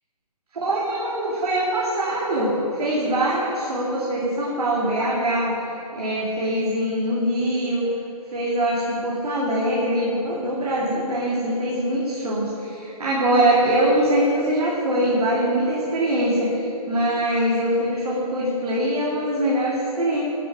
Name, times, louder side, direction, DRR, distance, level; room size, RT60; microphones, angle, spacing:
voice 1, 0.5-5.6 5.9-7.9 8.3-20.2, right 1 dB, 75° right, -5 dB, 2.3 m, -23 dB
9.3 x 9.2 x 5.0 m, 2.7 s
hypercardioid pair, 155°, 19 cm